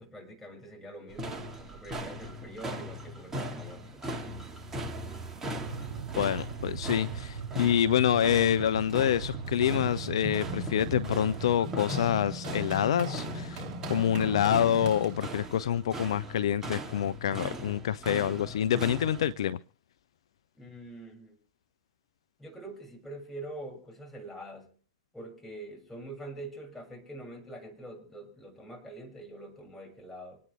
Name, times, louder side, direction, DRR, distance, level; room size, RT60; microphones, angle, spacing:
voice 1, 0.0-4.0 20.6-21.4 22.4-24.7 25.1-30.4, right 1 dB, 5° left, 7.5 m, -45 dB
sound 1, 1.1-19.3, equal, 15° right, 2.3 m, -40 dB
sound 2, 5.6-11.6, right 11 dB, 70° right, 0.8 m, -40 dB
voice 2, 6.2-19.6, left 10 dB, 65° left, 0.6 m, -27 dB
Run, 9.1-15.5, equal, 35° right, 3.4 m, -38 dB
26.0 x 9.6 x 3.6 m
figure-of-eight pair, 100°, 3 cm